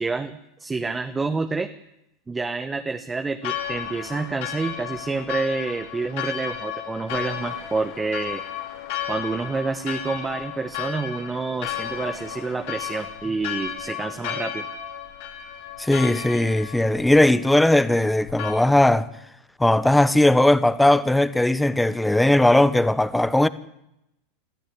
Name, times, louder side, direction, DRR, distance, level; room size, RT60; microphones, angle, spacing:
voice 1, 0.0-1.7 2.3-8.4 9.1-14.7, right 4 dB, 15° right, 1.3 m, -28 dB
Church bell, 3.4-18.5, left 10 dB, 60° left, 3.9 m, -34 dB
voice 2, 15.8-19.1 19.6-23.5, left 1 dB, 5° left, 1.2 m, -18 dB
22.0 x 14.0 x 9.9 m
hypercardioid pair, 105°, 0 cm